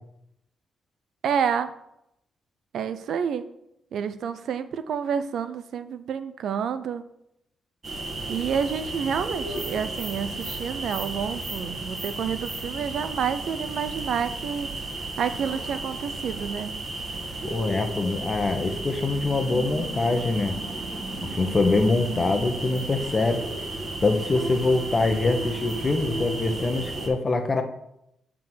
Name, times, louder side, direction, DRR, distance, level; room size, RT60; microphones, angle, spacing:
voice 1, 1.2-1.7 2.7-3.4 3.9-7.0 8.3-14.7 15.2-16.8, right 7 dB, 75° right, 12 dB, 0.5 m, -29 dB
sound 1, 7.8-27.1, right 2 dB, 40° right, 1.6 m, -33 dB
voice 2, 17.4-20.6 21.2-23.4 24.0-27.6, left 3 dB, 35° left, 6 dB, 1.0 m, -24 dB
7.5 x 3.7 x 6.2 m, 0.80 s
cardioid pair, 80°, 0 cm